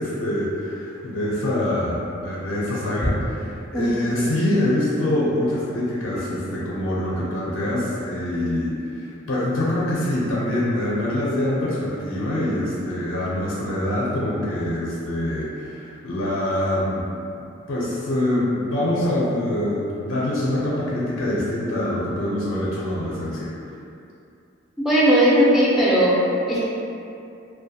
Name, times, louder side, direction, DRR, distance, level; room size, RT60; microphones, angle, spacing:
voice 1, 0.0-17.1 17.4-23.5, left 1 dB, 60° left, -7 dB, 0.4 m, -25 dB
voice 2, 24.8-26.6, equal, ahead, -9 dB, 0.3 m, -17 dB
2.4 x 2.2 x 2.7 m, 2.6 s
head